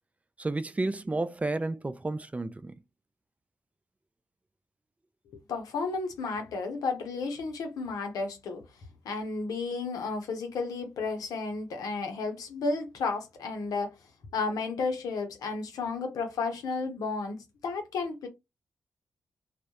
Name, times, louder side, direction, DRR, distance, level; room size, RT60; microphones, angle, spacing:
voice 1, 0.4-2.7, right 2 dB, 25° right, 0.4 m, -31 dB
voice 2, 5.3-8.6 9.0-13.9 14.3-18.3, left 4 dB, 80° left, 0.6 m, -32 dB
2.2 x 2.1 x 2.8 m
supercardioid pair, 40°, 6 cm